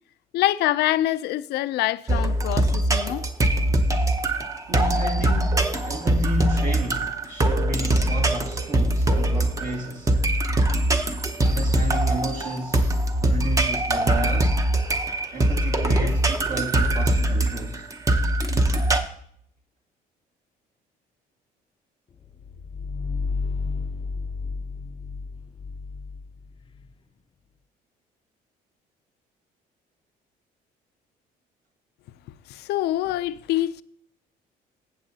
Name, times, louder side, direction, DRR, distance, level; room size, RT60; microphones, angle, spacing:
voice 1, 0.3-3.2 6.1-6.2 32.5-33.8, left 14 dB, 75° left, 0.5 m, -25 dB
sound 1, 2.1-19.0, right 1 dB, 20° right, 0.9 m, -22 dB
voice 2, 4.7-10.2 11.4-14.6 15.3-17.9, right 1 dB, 50° right, 1.8 m, -33 dB
sound 2, 22.2-26.9, left 4 dB, 30° left, 0.6 m, -32 dB
15.0 x 7.6 x 2.8 m
cardioid pair, 110°, 17 cm